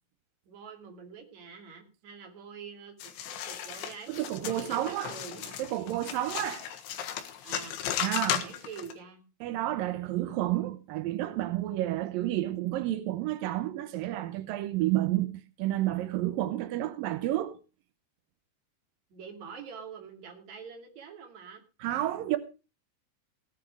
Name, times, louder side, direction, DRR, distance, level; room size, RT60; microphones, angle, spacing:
voice 1, 0.5-5.6 7.4-7.8 8.4-9.2 19.1-21.6, right 6 dB, 45° right, 3.3 m, -46 dB
sound 1, 3.0-8.9, left 10 dB, 85° left, 3.7 m, -35 dB
voice 2, 4.1-5.1 5.6-6.7 8.0-8.5 9.4-15.3 15.6-17.6 21.8-22.4, right 14 dB, 85° right, 2.0 m, -30 dB
17.0 x 9.1 x 4.6 m
omnidirectional pair, 5.3 m